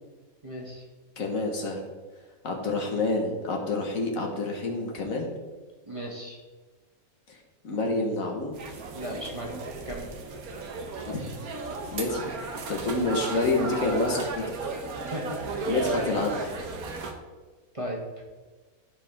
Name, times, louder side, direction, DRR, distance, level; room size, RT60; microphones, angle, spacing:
voice 1, 0.4-0.9 5.9-6.4 8.9-9.6 9.8-10.1 15.1-15.2 16.0-16.1 17.7-18.0, equal, 25° right, -1 dB, 1.3 m, -35 dB
voice 2, 1.2-1.9 2.4-5.3 7.3-7.4 7.6-8.6 11.1-11.2 11.9-14.4 15.7-16.4, left 2 dB, 70° left, 1 dB, 1.8 m, -28 dB
sound 1, 8.5-17.1, right 3 dB, 80° right, 1.5 m, -35 dB
14.5 x 4.9 x 3.7 m, 1.3 s
omnidirectional pair, 1.5 m